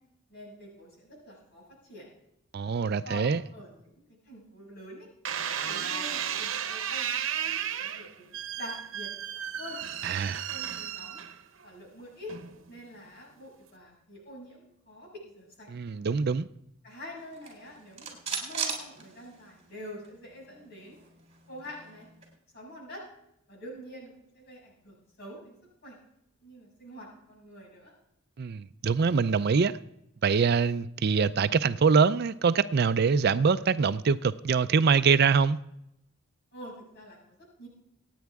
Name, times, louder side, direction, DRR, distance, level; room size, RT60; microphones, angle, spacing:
voice 1, 0.3-2.1 3.0-5.1 5.7-7.1 7.4-9.1 9.3-9.8 10.5-11.2 11.6-12.3 12.7-15.7 16.8-21.0 21.5-22.1 22.5-23.0 23.5-25.5 25.8-26.0 26.4-27.9 36.5-37.7, equal, 50° left, 6.7 m, -46 dB
voice 2, 2.5-3.4 10.0-10.5 15.7-16.5 28.4-29.8 30.2-35.6, right 5 dB, 50° right, 0.4 m, -24 dB
sound 1, 5.2-11.6 12.3-12.8, right 9 dB, 70° right, 1.0 m, -34 dB
sound 2, 17.3-19.7 20.0-20.1 20.4-22.3, right 6 dB, 30° right, 3.5 m, -38 dB
25.5 x 9.3 x 3.5 m
head